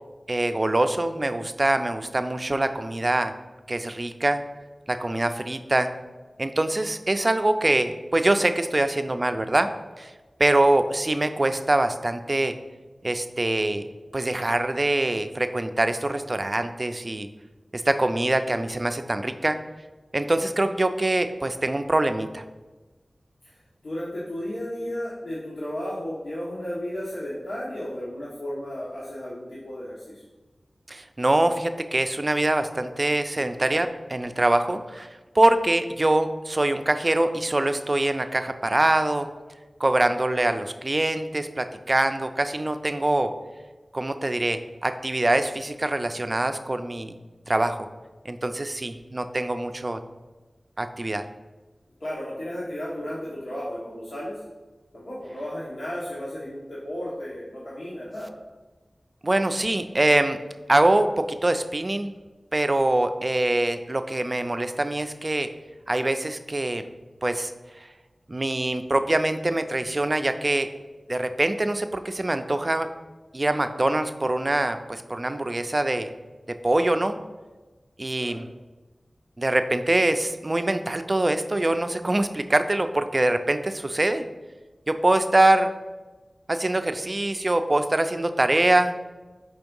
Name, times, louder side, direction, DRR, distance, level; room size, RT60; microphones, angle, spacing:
voice 1, 0.3-3.3 3.7-4.4 4.9-5.9 6.4-9.7 10.0-10.1 10.4-12.5 13.0-13.8 14.1-17.3 17.7-19.6 20.1-22.4 30.9-39.3 39.8-43.3 43.9-47.2 47.5-47.9 48.3-50.0 50.8-51.2 59.2-60.4 60.7-62.1 62.5-65.5 65.9-66.8 67.2-67.5 68.3-70.7 71.1-72.9 73.3-76.1 76.6-77.2 78.0-78.4 79.4-84.2 84.9-85.7 86.5-89.0, right 1 dB, 35° right, 9 dB, 0.4 m, -24 dB
voice 2, 23.8-30.2 52.0-54.4 54.9-58.3 78.2-78.4, equal, 85° left, -8 dB, 1.2 m, -34 dB
5.2 x 3.5 x 5.3 m, 1.2 s
wide cardioid pair, 75°, 0 cm